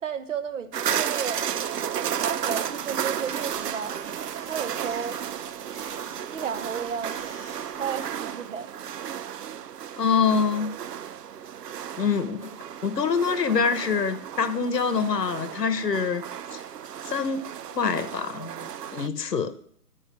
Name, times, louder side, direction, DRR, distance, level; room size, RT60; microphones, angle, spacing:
voice 1, 0.0-1.4 2.2-4.0 4.4-5.2 6.3-7.3 7.8-8.7, right 7 dB, 50° right, 1.0 m, -33 dB
sound 1, 0.7-19.1, right 9 dB, 85° right, 0.6 m, -33 dB
sound 2, 0.8-8.4, right 3 dB, 20° right, 1.1 m, -48 dB
voice 2, 10.0-10.8 12.0-12.5 12.8-16.2 16.5-16.6 17.1-17.4 17.7-19.5, left 5 dB, 85° left, 1.1 m, -25 dB
11.0 x 4.8 x 7.3 m
hypercardioid pair, 145°, 47 cm